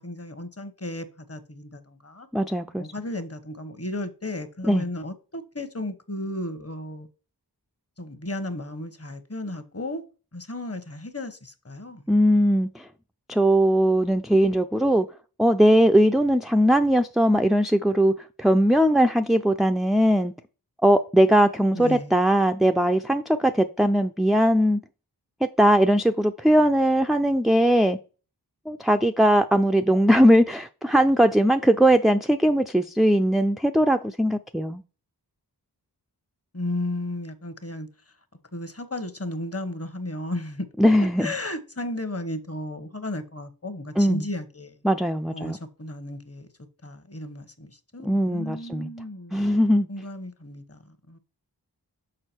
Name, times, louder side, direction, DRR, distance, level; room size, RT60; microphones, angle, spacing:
voice 1, 0.0-2.3 2.8-7.1 8.0-10.0 10.3-12.0 21.7-22.2 36.5-37.9 38.5-40.7 41.2-44.7 45.3-46.5 46.8-49.5 49.9-51.2, left 1 dB, 35° left, 1.1 m, -34 dB
voice 2, 2.3-2.9 4.7-4.8 12.1-12.9 13.3-15.1 15.4-18.1 18.4-20.3 20.8-24.8 25.6-28.0 28.7-34.8 40.8-41.3 44.0-44.2 44.8-45.6 48.0-48.9 49.3-49.9, equal, ahead, 0.4 m, -20 dB
6.6 x 4.8 x 4.4 m
wide cardioid pair, 50°, 40 cm